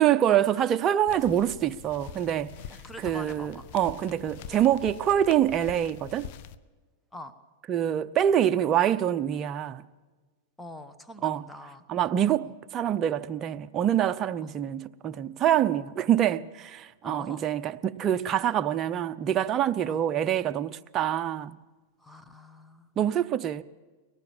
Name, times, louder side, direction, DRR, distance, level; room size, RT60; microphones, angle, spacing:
voice 1, 0.0-2.5 3.0-6.3 7.7-9.8 11.2-11.4 11.9-21.6 23.0-23.6, right 10 dB, 30° right, 0.8 m, -25 dB
sound 1, 1.1-6.6, left 9 dB, 55° left, 0.9 m, -44 dB
voice 2, 2.8-3.7 7.1-7.3 10.6-11.8 12.4-12.5 14.4-14.6 17.0-17.5 19.9-20.0 22.0-22.9, left 1 dB, 5° left, 1.3 m, -44 dB
23.5 x 18.5 x 7.3 m
hypercardioid pair, 130°, 0 cm